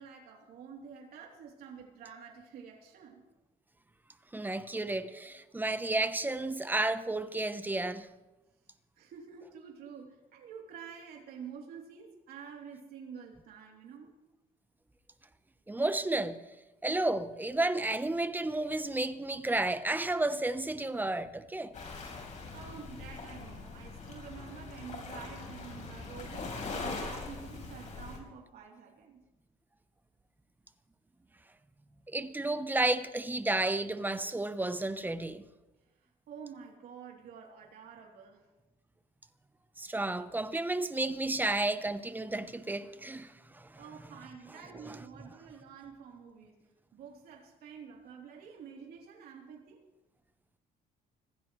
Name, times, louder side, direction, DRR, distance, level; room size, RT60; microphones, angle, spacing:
voice 1, 0.0-3.2 9.0-14.2 22.5-29.2 36.0-38.4 43.8-46.6 46.9-49.8, right 6 dB, 65° right, 3.2 m, -48 dB
voice 2, 4.3-8.1 15.7-16.4 16.8-21.7 32.1-35.4 39.8-43.7 44.9-45.0, right 2 dB, 10° right, 0.9 m, -32 dB
Waves surf, 21.7-28.2, left 3 dB, 45° left, 4.2 m, -42 dB
25.5 x 15.5 x 3.2 m
cardioid pair, 110°, 17 cm